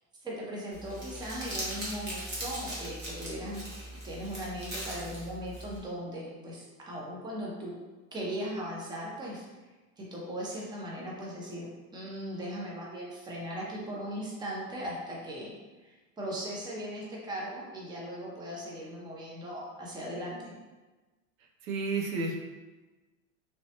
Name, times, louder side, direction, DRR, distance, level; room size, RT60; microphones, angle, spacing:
voice 1, 0.2-7.7 8.1-9.5 10.0-15.5 15.8-20.5, equal, 10° right, -4 dB, 0.7 m, -38 dB
Crumpling crinkling, 0.7-5.8, right 1 dB, 25° right, 1.1 m, -39 dB
voice 2, 21.6-22.4, right 3 dB, 75° right, 1 dB, 0.7 m, -31 dB
3.3 x 2.9 x 2.8 m, 1.2 s
supercardioid pair, 125°, 40 cm